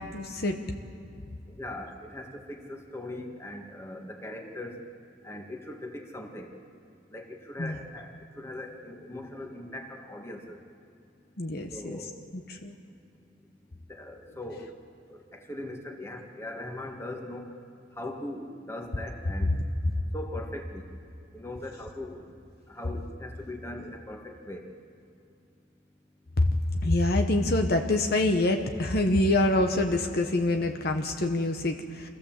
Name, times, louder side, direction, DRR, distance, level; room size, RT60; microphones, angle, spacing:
voice 1, 0.1-0.6 7.6-7.7 11.4-12.0 12.3-12.7 26.4-26.5 26.8-32.1, left 2 dB, 55° left, 5 dB, 1.1 m, -25 dB
voice 2, 1.5-4.8 5.2-6.5 7.1-10.6 11.7-12.2 13.9-14.7 15.1-17.5 18.0-19.5 20.1-20.9 21.3-22.2 22.7-24.7, left 1 dB, 15° left, 2 dB, 1.7 m, -40 dB
26.5 x 15.0 x 7.5 m, 2.5 s
head